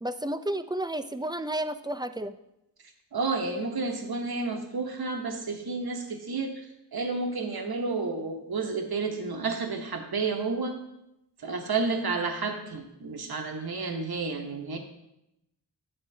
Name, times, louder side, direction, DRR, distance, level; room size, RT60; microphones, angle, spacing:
voice 1, 0.0-2.4, right 1 dB, 10° right, 9 dB, 0.4 m, -31 dB
voice 2, 3.1-10.8 11.4-14.8, right 4 dB, 65° right, 3 dB, 0.9 m, -31 dB
9.5 x 7.7 x 2.7 m, 0.86 s
wide cardioid pair, 50°, 39 cm